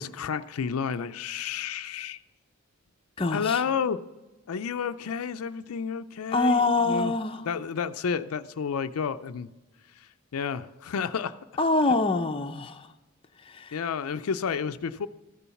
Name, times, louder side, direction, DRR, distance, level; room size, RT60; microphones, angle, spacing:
voice 1, 0.0-2.2 3.3-4.0 4.5-7.1 7.4-9.5 10.0-11.4 13.7-15.1, left 6 dB, 80° left, 0.4 m, -31 dB
voice 2, 3.2-3.6 6.3-7.4 11.6-12.8 13.5-13.7, left 3 dB, 25° left, 0.5 m, -25 dB
14.0 x 7.0 x 5.7 m
head